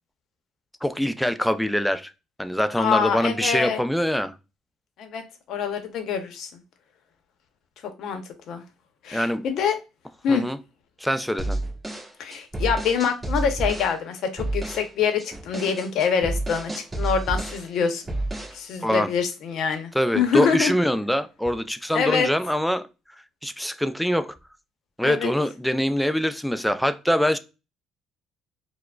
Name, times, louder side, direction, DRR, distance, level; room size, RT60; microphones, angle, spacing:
voice 1, 0.8-2.1 2.4-4.3 9.1-9.4 10.3-10.6 11.0-11.6 18.8-19.1 19.9-22.9 23.4-24.3 25.0-27.4, equal, ahead, 0.3 m, -24 dB
voice 2, 2.8-3.8 5.0-5.2 5.5-6.5 8.0-8.2 8.5-8.6 9.0-9.8 10.2-10.4 12.2-18.0 18.5-20.7 21.9-22.3 25.0-25.3, left 6 dB, 65° left, 0.7 m, -25 dB
sound 1, 11.4-14.0 14.4-14.9 15.2-17.7 18.1-18.6, right 2 dB, 15° right, 1.3 m, -30 dB
4.6 x 2.1 x 2.2 m
cardioid pair, 105°, 0 cm